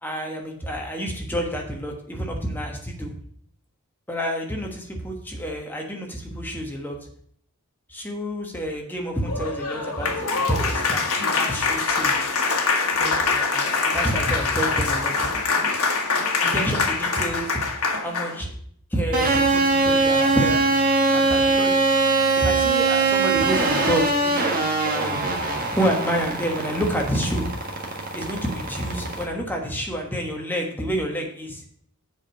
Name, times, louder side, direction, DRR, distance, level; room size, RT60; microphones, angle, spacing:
voice 1, 0.0-3.2 4.1-7.1 7.9-11.1 11.4-12.1 13.0-15.3 16.4-17.6 18.0-18.5 18.9-20.7 21.1-21.8 22.4-24.5 24.8-25.3 25.8-27.5 28.1-31.6, equal, 10° left, 1 dB, 1.2 m, -28 dB
Applause, 9.2-18.4, left 4 dB, 75° left, 1.4 m, -24 dB
sound 1, 19.1-29.2, right 3 dB, 40° right, 1.5 m, -22 dB
7.5 x 5.0 x 6.2 m, 0.64 s
head